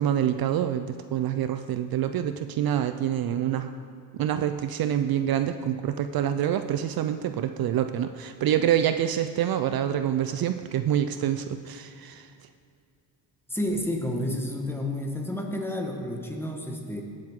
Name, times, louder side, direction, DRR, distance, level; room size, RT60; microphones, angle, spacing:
voice 1, 0.0-3.7 4.1-12.3, right 10 dB, 55° right, 9 dB, 0.5 m, -26 dB
voice 2, 13.5-17.0, left 1 dB, 5° left, 2 dB, 1.3 m, -30 dB
17.0 x 7.8 x 3.7 m, 2.3 s
cardioid pair, 110°, 43 cm